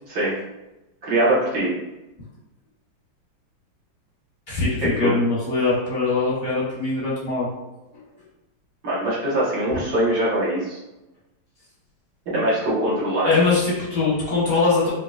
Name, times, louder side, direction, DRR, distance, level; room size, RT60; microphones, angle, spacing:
voice 1, 1.0-1.7 4.8-5.1 8.8-10.8 12.3-13.3, right 1 dB, 50° right, -7 dB, 1.6 m, -22 dB
voice 2, 4.5-7.5 13.2-14.9, left 3 dB, 45° left, -7 dB, 0.8 m, -22 dB
4.5 x 2.7 x 2.4 m, 1.0 s
omnidirectional pair, 2.3 m